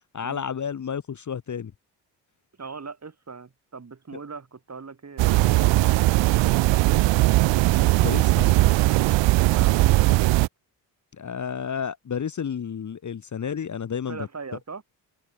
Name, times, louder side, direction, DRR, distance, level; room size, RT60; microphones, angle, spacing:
voice 1, 0.1-1.7 7.9-8.6 11.2-14.3, left 7 dB, 40° left, 1.3 m, -31 dB
voice 2, 2.6-7.4 9.5-10.5 14.1-14.8, right 4 dB, 35° right, 4.4 m, -41 dB
sound 1, 5.2-10.5, right 19 dB, 65° right, 0.6 m, -19 dB
open air
supercardioid pair, 55°, 47 cm